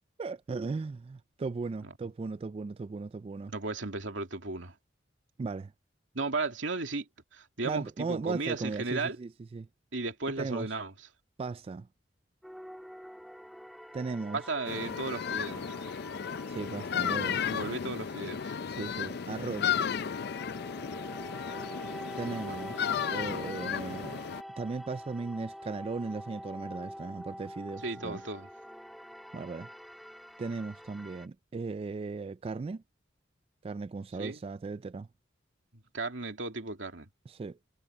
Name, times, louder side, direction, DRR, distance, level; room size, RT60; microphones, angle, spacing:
voice 1, 0.2-3.5 5.4-5.7 7.6-9.7 10.4-10.7 11.4-11.9 13.9-14.4 16.5-17.4 18.7-19.7 22.2-24.2 24.6-28.2 29.3-29.7 30.4-32.8 33.6-35.1 37.3-37.6, right 4 dB, 30° right, 0.3 m, -37 dB
voice 2, 3.5-4.8 6.1-9.2 9.9-10.9 14.3-15.8 17.4-18.5 22.4-22.6 27.8-28.5 34.2-34.4 35.9-37.1, right 3 dB, 80° right, 2.6 m, -35 dB
sound 1, 12.4-31.3, equal, ahead, 3.0 m, -46 dB
sound 2, 14.7-24.4, left 7 dB, 60° left, 0.5 m, -34 dB
head